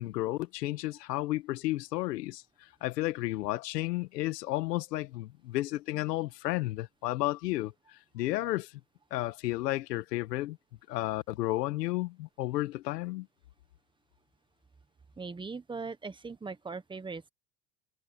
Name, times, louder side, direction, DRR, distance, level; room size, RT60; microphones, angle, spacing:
voice 1, 0.0-2.4 2.8-8.7 9.1-10.6 10.9-13.3, left 17 dB, 90° left, 1.9 m, -32 dB
voice 2, 15.2-17.3, right 4 dB, 10° right, 1.3 m, -40 dB
supercardioid pair, 130°, 47 cm